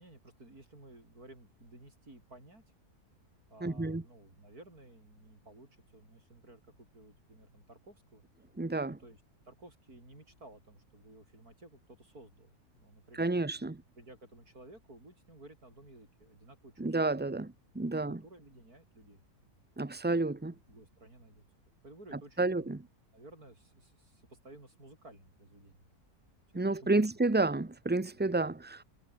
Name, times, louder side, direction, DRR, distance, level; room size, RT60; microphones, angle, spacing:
voice 1, 0.0-2.6 3.5-8.2 8.9-13.6 14.0-17.4 17.9-19.2 20.5-21.5 21.8-22.7 23.1-25.9 26.5-27.4, right 2 dB, 70° right, 8.6 m, -55 dB
voice 2, 3.6-4.0 8.6-9.0 13.2-13.8 16.8-18.2 19.8-20.5 22.4-22.8 26.5-28.8, right 2 dB, 15° right, 0.3 m, -30 dB
omnidirectional pair, 1.6 m